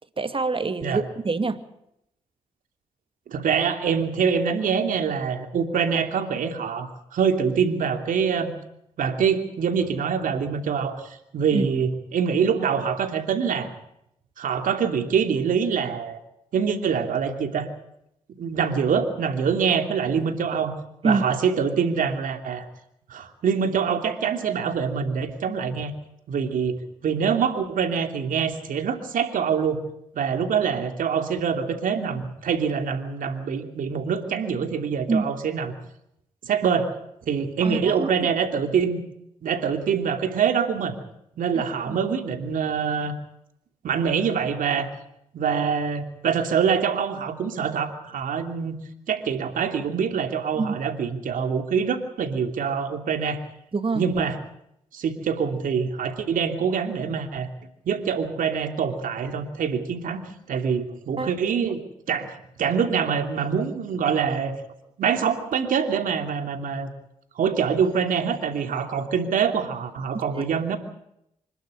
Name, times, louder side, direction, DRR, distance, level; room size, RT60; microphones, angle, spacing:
voice 1, 0.2-1.6 11.5-11.7 21.0-21.3 35.1-35.3 37.6-38.1 41.9-42.0 50.6-50.8 53.7-54.1 61.2-61.3 70.1-70.5, right 4 dB, 40° right, 10 dB, 2.3 m, -25 dB
voice 2, 3.3-8.6 9.0-13.7 14.4-16.2 16.5-17.7 18.4-20.7 21.0-22.7 23.1-25.9 26.3-29.8 30.1-35.7 36.4-36.9 37.3-39.0 39.4-41.0 41.4-43.1 43.8-44.9 45.3-48.8 49.1-53.4 53.9-54.4 54.9-57.5 57.9-60.2 60.5-61.8 62.1-64.6 65.0-66.9 67.4-70.8, right 6 dB, 70° right, 7 dB, 2.9 m, -25 dB
26.0 x 12.0 x 9.9 m, 0.78 s
supercardioid pair, 45°, 14 cm